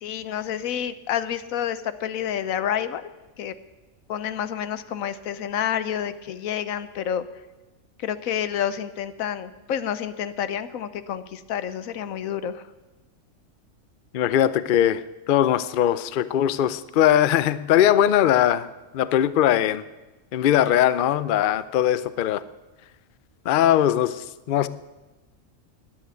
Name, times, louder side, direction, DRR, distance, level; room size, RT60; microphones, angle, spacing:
voice 1, 0.0-3.1 3.4-3.6 4.1-7.2 8.0-12.6, left 9 dB, 85° left, 13 dB, 1.2 m, -29 dB
voice 2, 14.1-15.0 15.3-18.7 18.9-19.8 20.3-22.4 23.5-24.7, left 11 dB, 60° left, 16 dB, 0.5 m, -20 dB
10.0 x 9.9 x 9.3 m, 1.2 s
omnidirectional pair, 1.4 m